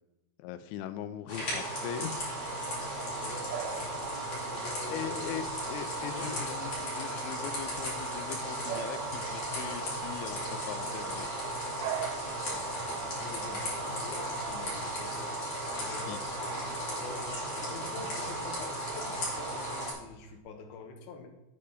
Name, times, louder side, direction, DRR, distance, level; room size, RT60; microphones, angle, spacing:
voice 1, 0.4-2.3 4.9-11.4 12.5-12.7 15.8-16.2, left 10 dB, 90° left, 10 dB, 3.0 m, -41 dB
sound 1, 1.3-19.9, right 1 dB, 30° left, 3.7 m, -35 dB
Bark / Bird vocalization bird call bird song, 2.8-20.4, right 8 dB, 75° right, 2.4 m, -46 dB
voice 2, 2.9-5.4 6.1-6.3 12.5-15.3 15.8-16.5 16.9-21.3, left 4 dB, 70° left, 2 dB, 3.0 m, -46 dB
9.9 x 8.5 x 4.3 m, 0.95 s
omnidirectional pair, 5.1 m